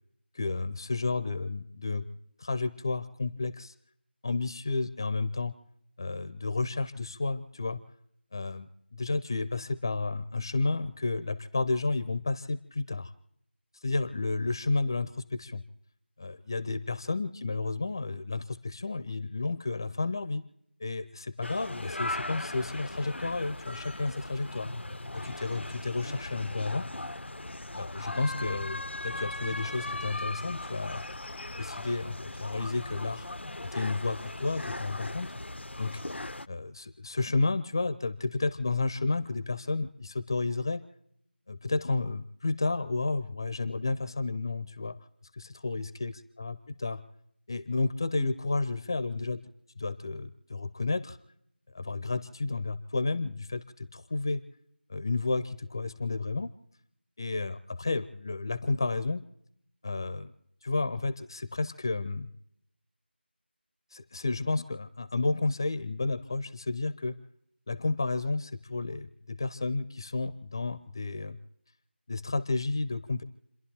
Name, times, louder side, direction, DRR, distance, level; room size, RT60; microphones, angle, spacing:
voice 1, 0.3-2.1 2.4-3.7 4.2-5.5 6.0-7.8 8.3-13.1 13.8-15.6 16.2-20.4 20.8-24.7 25.2-26.9 27.8-31.1 31.6-33.3 33.7-35.3 35.8-36.0 36.5-40.8 41.5-45.0 45.3-46.1 46.4-47.0 47.5-49.4 49.8-51.2 51.7-54.4 54.9-56.5 57.2-59.2 59.8-60.3 60.6-62.3 63.9-67.2 67.7-71.4 72.1-73.2, left 3 dB, 20° left, 12 dB, 0.5 m, -31 dB
sound 1, 21.4-36.5, left 2 dB, 85° left, 0.5 m, -38 dB
29.5 x 11.0 x 4.4 m, 0.74 s
figure-of-eight pair, 170°, 6 cm